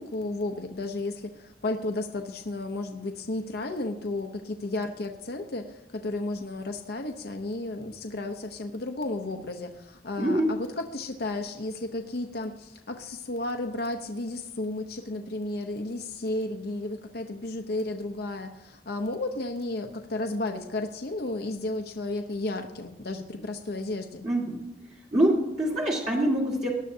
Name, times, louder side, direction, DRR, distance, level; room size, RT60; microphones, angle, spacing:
voice 1, 0.0-24.3, left 2 dB, 65° left, 5 dB, 0.8 m, -33 dB
voice 2, 10.2-10.5 24.2-24.6 25.1-26.7, right 1 dB, 40° right, -4 dB, 2.0 m, -24 dB
18.5 x 11.5 x 2.7 m, 1.0 s
head